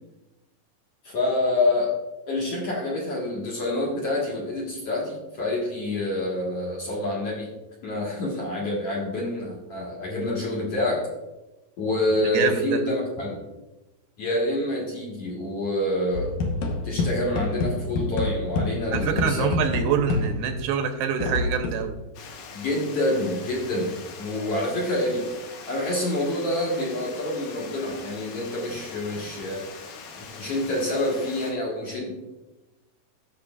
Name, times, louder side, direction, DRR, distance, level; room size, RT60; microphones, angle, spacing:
voice 1, 1.0-1.9 2.3-7.5 7.8-11.0 11.8-13.4 14.2-16.3 16.8-19.5 22.5-25.3 25.7-29.7 30.4-32.1, left 1 dB, 50° left, -4 dB, 2.2 m, -27 dB
voice 2, 12.1-12.8 18.9-22.0, right 6 dB, 85° right, 5 dB, 2.7 m, -25 dB
sound 1, 16.1-20.6 21.2-21.9, left 2 dB, 65° left, 2.1 m, -27 dB
Water, 22.2-31.5, left 5 dB, 85° left, 3.1 m, -42 dB
15.5 x 6.6 x 2.4 m, 1.0 s
omnidirectional pair, 4.4 m